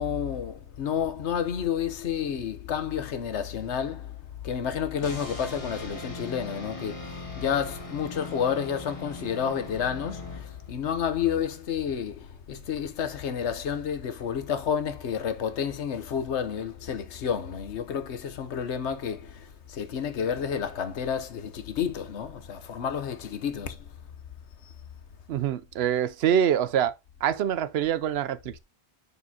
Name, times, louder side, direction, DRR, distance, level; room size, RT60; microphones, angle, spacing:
voice 1, 0.0-4.2 4.4-23.9, left 8 dB, 90° left, 1.2 m, -30 dB
sound 1, 5.0-10.9, left 2 dB, 30° left, 1.8 m, -40 dB
voice 2, 25.3-26.9 27.2-28.6, right 9 dB, 70° right, 0.8 m, -25 dB
6.9 x 6.7 x 2.8 m
omnidirectional pair, 1.1 m